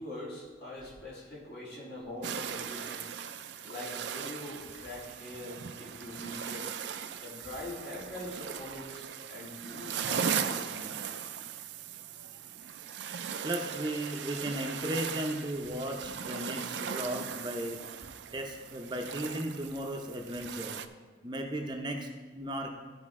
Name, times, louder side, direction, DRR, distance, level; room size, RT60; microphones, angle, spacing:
voice 1, 0.0-3.1 3.6-6.7 7.2-11.1 13.3-13.4, left 1 dB, 65° left, -6 dB, 3.0 m, -43 dB
sound 1, 2.2-20.9, right 7 dB, 75° right, 0.5 m, -38 dB
voice 2, 13.4-17.8 18.3-20.8 21.2-22.7, right 1 dB, 25° right, 2 dB, 0.6 m, -35 dB
14.0 x 5.0 x 3.7 m, 1.4 s
head